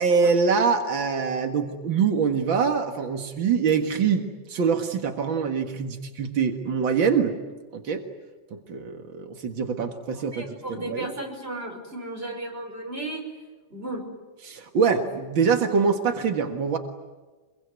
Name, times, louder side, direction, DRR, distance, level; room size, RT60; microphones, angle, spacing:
voice 1, 0.0-7.4 7.7-8.0 8.5-11.1 14.4-16.8, right 5 dB, 90° right, 5 dB, 2.5 m, -24 dB
voice 2, 10.3-13.2 13.7-14.0 15.0-15.1, right 1 dB, 30° right, 2 dB, 6.1 m, -35 dB
26.5 x 23.0 x 9.5 m, 1.3 s
omnidirectional pair, 2.0 m